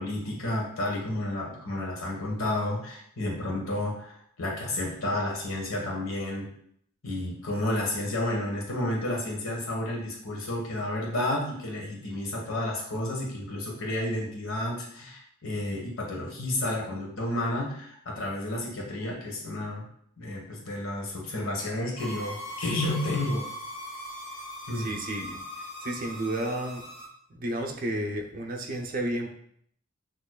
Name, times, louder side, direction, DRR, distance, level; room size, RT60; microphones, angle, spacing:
voice 1, 0.0-6.5 7.0-19.8 20.2-23.4 24.7-24.9, left 1 dB, 75° left, -2 dB, 1.3 m, -31 dB
sound 1, 22.0-27.1, left 1 dB, 55° left, 1.8 m, -40 dB
voice 2, 24.7-25.4 25.8-26.8 27.3-29.3, right 1 dB, 40° right, 2 dB, 0.6 m, -32 dB
6.4 x 3.0 x 2.3 m, 0.67 s
head